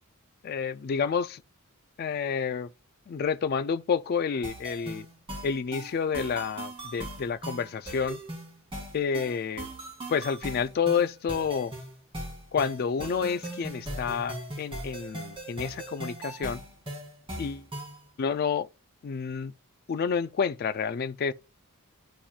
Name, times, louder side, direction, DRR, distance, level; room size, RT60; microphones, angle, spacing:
voice 1, 0.4-1.4 2.0-2.7 3.1-5.1 5.4-8.2 8.9-9.7 10.1-11.7 12.5-16.6 17.4-17.6 18.2-18.7 19.0-19.5 19.9-21.3, left 6 dB, 45° left, 0.3 m, -29 dB
sound 1, 4.4-18.0, right 1 dB, 25° right, 2.4 m, -39 dB
11.5 x 4.3 x 2.4 m
head